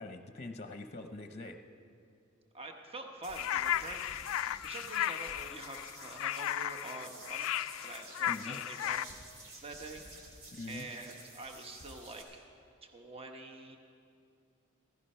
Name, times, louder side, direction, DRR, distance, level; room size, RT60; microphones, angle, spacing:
voice 1, 0.0-1.6 8.3-8.6 10.5-10.9, left 2 dB, 35° left, 7 dB, 0.7 m, -43 dB
voice 2, 2.5-4.0 4.3-7.5 7.8-9.1 9.6-10.0 10.7-12.5 12.8-13.8, right 2 dB, 30° right, 3 dB, 1.0 m, -46 dB
sound 1, 3.2-12.2, right 2 dB, 85° right, 2.8 m, -52 dB
sound 2, 3.3-9.0, left 12 dB, 85° left, 0.3 m, -35 dB
15.5 x 14.5 x 5.6 m, 2.5 s
head